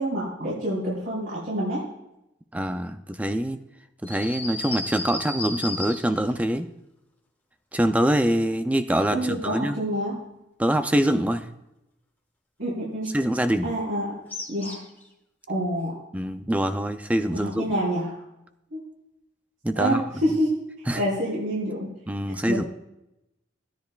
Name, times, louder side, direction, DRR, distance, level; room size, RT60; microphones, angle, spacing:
voice 1, 0.0-1.8 9.1-10.2 12.6-13.1 13.6-14.2 14.5-14.8 15.5-16.0 17.3-18.2 18.7-18.8 19.7-20.5 20.8-21.9 22.5-22.7, equal, 85° right, -9 dB, 4.2 m, -27 dB
voice 2, 2.5-3.6 4.0-6.7 7.7-9.8 10.6-11.5 13.1-13.7 16.1-17.8 19.6-20.0 20.9-21.0 22.1-22.6, right 1 dB, 10° right, 9 dB, 0.3 m, -24 dB
sound 1, 4.1-6.3 14.3-15.0, left 2 dB, 10° left, 1.0 m, -33 dB
15.5 x 10.5 x 2.4 m, 0.89 s
head